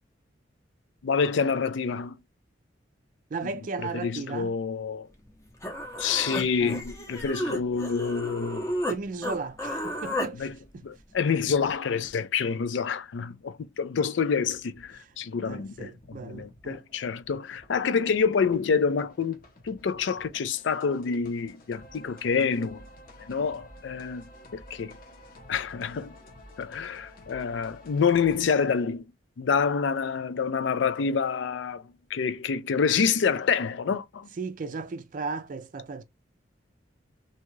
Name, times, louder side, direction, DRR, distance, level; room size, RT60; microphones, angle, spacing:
voice 1, 1.0-2.2 3.8-5.1 6.0-8.7 10.4-10.5 10.8-22.9 23.3-24.2 24.5-25.0 25.5-26.2 26.6-29.0 29.4-31.8 32.1-34.3, left 6 dB, 70° left, 0.4 m, -27 dB
voice 2, 3.3-4.5 6.6-6.8 8.9-10.5 10.7-10.8 14.9-15.1 15.5-16.8 34.4-36.0, right 4 dB, 45° right, 0.4 m, -35 dB
Human voice, 5.3-5.4 5.6-9.0 9.2-10.3, equal, 15° left, 0.6 m, -32 dB
sound 1, 14.5-28.5, left 1 dB, 45° left, 0.7 m, -51 dB
2.8 x 2.3 x 3.0 m
head